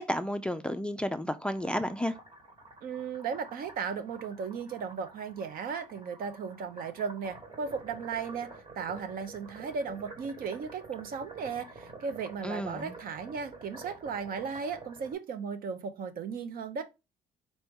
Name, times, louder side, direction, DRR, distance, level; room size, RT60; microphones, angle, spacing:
voice 1, 0.0-2.1 12.4-12.9, equal, 5° left, 0.3 m, -32 dB
sound 1, 1.5-15.1, right 3 dB, 30° right, 1.3 m, -49 dB
voice 2, 2.8-8.5 8.7-16.8, right 6 dB, 60° right, 0.8 m, -36 dB
4.2 x 2.9 x 3.4 m
cardioid pair, 110°, 17 cm